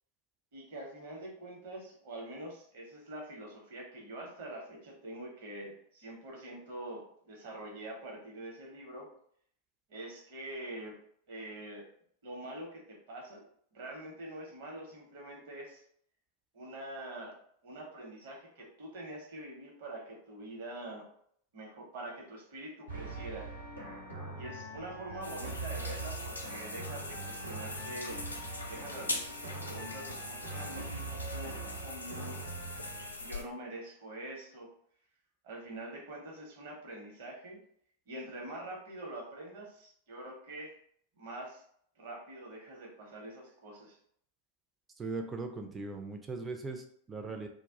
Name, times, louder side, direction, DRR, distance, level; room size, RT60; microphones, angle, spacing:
voice 1, 0.5-9.1 9.9-11.0 11.3-11.9 12.2-13.4 13.7-15.8 16.5-17.4 17.6-21.1 21.5-23.5 24.3-28.2 28.7-32.4 33.2-34.7 35.4-37.6 38.1-40.7 41.1-41.6 42.0-44.0, right 1 dB, 55° right, 0 dB, 0.8 m, -45 dB
sound 1, 22.9-33.1, right 3 dB, 85° right, 0.9 m, -42 dB
sound 2, 25.2-33.4, left 2 dB, 80° left, 0.4 m, -42 dB
voice 2, 45.0-47.5, right 3 dB, 15° right, 4 dB, 0.4 m, -39 dB
2.3 x 2.0 x 3.5 m, 0.65 s
figure-of-eight pair, 90°, 0 cm